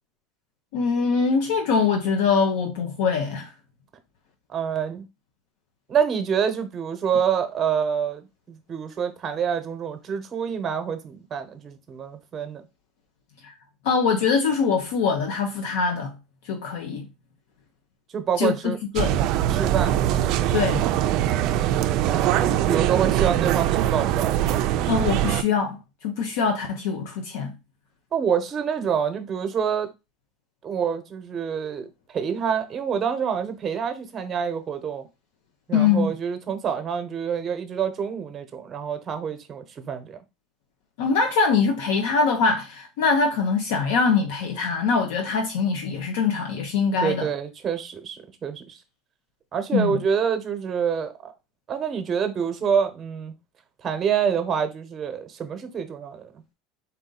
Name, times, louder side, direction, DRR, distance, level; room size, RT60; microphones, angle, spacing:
voice 1, 0.7-3.5 13.4-13.5 13.8-16.1 16.4-17.1 18.4-19.2 20.5-20.8 24.9-27.5 35.7-36.1 41.0-47.2 49.7-50.0, left 5 dB, 80° left, 0.7 m, -23 dB
voice 2, 4.5-5.0 5.9-12.6 18.1-18.8 19.5-20.0 22.0-24.5 28.1-29.9 30.6-35.1 35.7-40.2 47.0-48.8 49.5-51.3 51.7-53.3 53.8-56.4, right 7 dB, 30° right, 0.8 m, -27 dB
sound 1, 19.0-25.4, right 12 dB, 55° right, 0.3 m, -22 dB
4.2 x 2.6 x 3.8 m
supercardioid pair, 125°, 0 cm